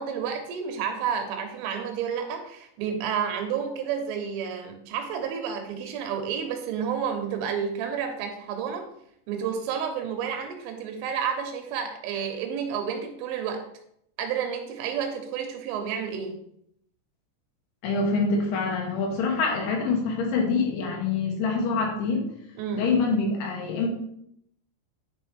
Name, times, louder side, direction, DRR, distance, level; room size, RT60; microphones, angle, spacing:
voice 1, 0.0-8.8 9.3-13.6 14.2-16.4 22.6-22.9, right 7 dB, 85° right, 4 dB, 3.5 m, -30 dB
voice 2, 17.8-22.2 22.7-23.9, left 4 dB, 75° left, 0 dB, 3.5 m, -25 dB
9.7 x 4.5 x 3.4 m, 0.72 s
omnidirectional pair, 5.6 m